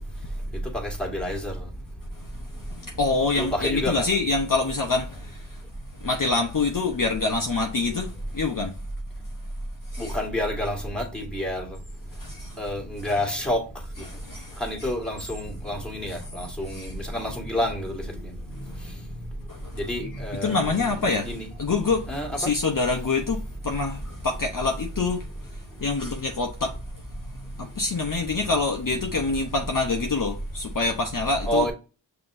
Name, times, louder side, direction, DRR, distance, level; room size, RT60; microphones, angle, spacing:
voice 1, 0.8-1.5 3.4-4.0 10.0-11.6 12.6-13.6 14.6-18.0 19.8-20.6 21.2-21.5 22.1-22.3 31.5-31.7, left 1 dB, ahead, 1.7 m, -28 dB
voice 2, 2.6-5.6 5.9-8.8 9.9-10.2 12.1-12.6 13.0-13.1 14.0-14.9 16.1-17.1 18.2-18.3 18.5-19.0 19.5-27.0 27.3-31.7, left 3 dB, 45° left, 0.8 m, -27 dB
5.9 x 2.9 x 2.6 m
cardioid pair, 40°, 47 cm